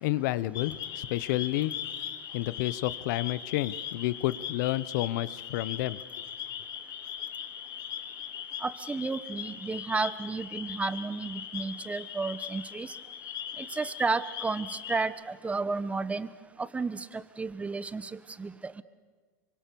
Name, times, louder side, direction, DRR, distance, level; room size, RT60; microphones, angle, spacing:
voice 1, 0.0-1.8 2.3-6.0, left 16 dB, 70° left, 18 dB, 1.0 m, -30 dB
sound 1, 0.5-15.0, left 9 dB, 45° left, 2.1 m, -40 dB
voice 2, 8.6-13.0 13.6-16.3 16.6-18.8, right 4 dB, 15° right, 15 dB, 1.0 m, -32 dB
26.0 x 24.5 x 7.1 m, 1.5 s
supercardioid pair, 125°, 10 cm